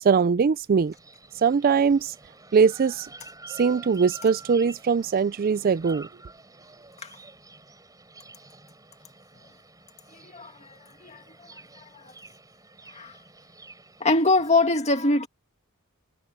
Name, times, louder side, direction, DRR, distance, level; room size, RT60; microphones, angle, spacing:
voice 1, 0.0-0.9 1.4-2.1 2.5-3.1 3.5-6.1, right 6 dB, 40° right, 0.4 m, -21 dB
Waterfall&birds ambiance, 0.7-14.7, right 2 dB, 15° right, 7.5 m, -49 dB
voice 2, 10.1-11.2 12.0-12.1 12.9-13.2 14.0-15.3, left 2 dB, 30° left, 2.1 m, -24 dB
head